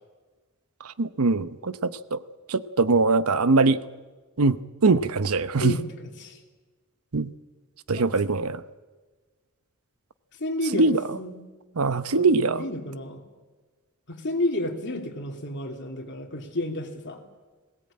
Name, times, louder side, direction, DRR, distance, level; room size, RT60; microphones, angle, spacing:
voice 1, 0.8-2.2 2.5-3.8 4.4-5.7 7.1-7.3 7.9-8.6 10.7-11.0 11.8-12.6, right 3 dB, 85° right, 14 dB, 0.8 m, -22 dB
voice 2, 5.6-6.4 8.0-8.1 10.4-10.9 11.2-11.4 12.1-12.3 12.5-13.2 14.1-17.2, left 1 dB, 55° left, 3 dB, 2.9 m, -31 dB
21.0 x 18.0 x 8.7 m, 1.3 s
head